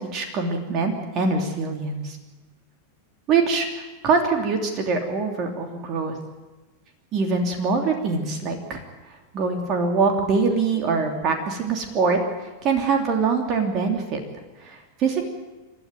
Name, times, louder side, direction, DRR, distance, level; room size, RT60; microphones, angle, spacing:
voice 1, 0.0-2.2 3.3-3.7 4.0-6.1 7.1-8.8 9.3-12.2 12.6-14.2 14.6-15.2, right 4 dB, 35° right, 3 dB, 3.1 m, -23 dB
29.0 x 12.5 x 9.4 m, 1.2 s
figure-of-eight pair, 90°, 0 cm